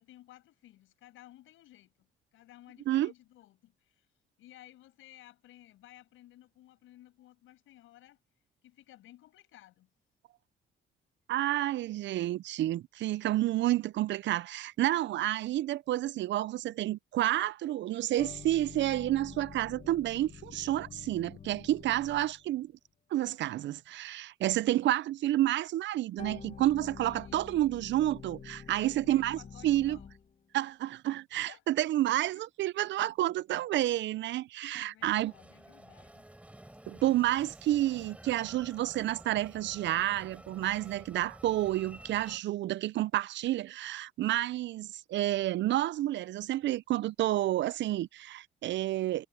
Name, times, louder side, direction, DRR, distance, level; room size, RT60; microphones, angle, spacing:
voice 1, 0.0-4.1 4.4-8.2 8.6-9.9 27.0-27.7 28.7-30.1 31.3-31.6 32.3-32.4 34.7-36.2 37.7-37.8, left 14 dB, 90° left, 6.9 m, -56 dB
voice 2, 11.3-22.7 23.1-30.0 30.5-35.3 36.9-49.3, right 14 dB, 65° right, 0.4 m, -30 dB
sound 1, 18.2-22.6 26.2-30.4, left 6 dB, 40° left, 1.4 m, -48 dB
Train, 35.0-42.4, right 1 dB, 5° right, 4.8 m, -52 dB
cardioid pair, 90°, 20 cm